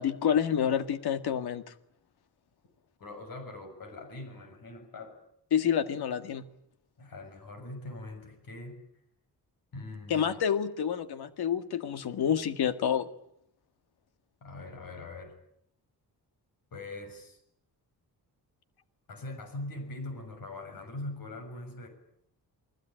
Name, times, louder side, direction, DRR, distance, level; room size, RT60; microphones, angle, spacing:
voice 1, 0.0-1.6 5.5-6.5 10.1-13.1, left 8 dB, 85° left, 10 dB, 2.0 m, -28 dB
voice 2, 3.0-5.2 7.0-8.8 9.7-10.3 14.4-15.3 16.7-17.4 19.1-21.9, left 2 dB, 65° left, 7 dB, 7.0 m, -42 dB
29.0 x 20.0 x 9.1 m, 0.73 s
wide cardioid pair, 150°, 37 cm